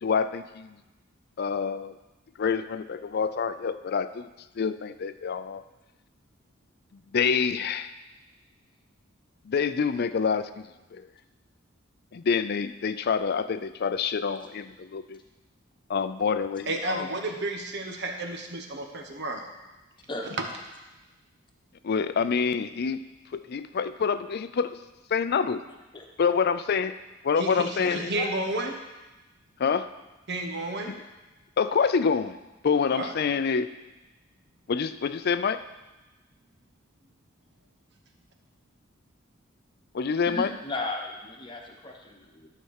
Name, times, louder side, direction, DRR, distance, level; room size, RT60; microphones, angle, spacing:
voice 1, 0.0-0.8 1.4-1.9 2.4-4.3 4.6-5.6 7.1-7.9 9.5-10.7 10.9-11.1 12.1-15.2 15.9-17.1 21.8-23.0 23.3-24.8 25.1-25.6 26.2-26.9 27.2-28.1 29.6-29.9 30.9-31.0 31.6-32.4 32.6-33.7 34.7-35.6 39.9-40.5, left 6 dB, 50° left, 12 dB, 0.4 m, -27 dB
voice 2, 16.7-19.5 27.4-28.7 30.3-30.9 32.9-33.1, right 2 dB, 60° right, 4 dB, 1.1 m, -32 dB
voice 3, 27.8-28.3 40.3-42.5, left 2 dB, 25° left, 1 dB, 1.2 m, -35 dB
12.0 x 4.3 x 6.5 m, 1.1 s
head